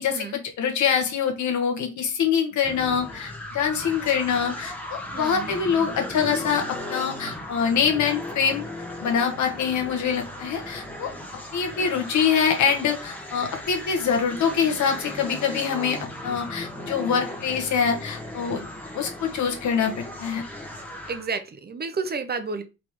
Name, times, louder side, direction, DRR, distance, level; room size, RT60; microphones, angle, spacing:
voice 1, 0.0-8.6 9.0-16.0 16.2-18.7 18.9-20.4, left 7 dB, 70° left, 4 dB, 1.3 m, -25 dB
sound 1, 2.6-21.3, left 1 dB, 5° left, 1.2 m, -36 dB
voice 2, 5.1-5.5 21.1-22.6, right 4 dB, 35° right, 9 dB, 0.7 m, -31 dB
4.1 x 3.6 x 3.1 m, 0.28 s
cardioid pair, 90°, 30 cm